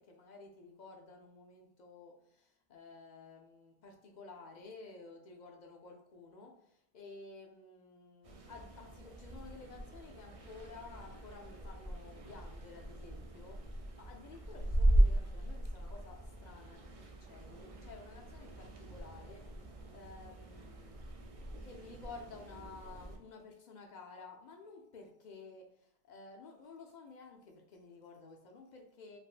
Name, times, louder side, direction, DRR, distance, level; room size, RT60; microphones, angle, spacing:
voice 1, 0.0-21.0 21.6-29.2, left 3 dB, 55° left, 2 dB, 0.5 m, -53 dB
sound 1, 8.2-23.2, right 1 dB, 50° right, 0.4 m, -37 dB
3.4 x 2.5 x 2.4 m, 0.74 s
omnidirectional pair, 1.0 m